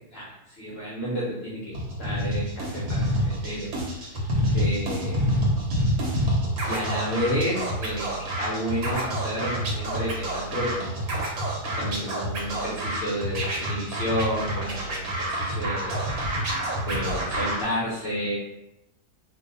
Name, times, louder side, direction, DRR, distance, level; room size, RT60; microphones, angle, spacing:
voice 1, 0.1-4.1 4.5-5.2 6.7-11.1 11.6-16.1 16.8-18.4, equal, 60° left, -6 dB, 0.6 m, -31 dB
Scratching (performance technique), 1.7-17.6, equal, 70° right, 1.1 m, -28 dB
2.7 x 2.2 x 3.7 m, 0.87 s
omnidirectional pair, 1.8 m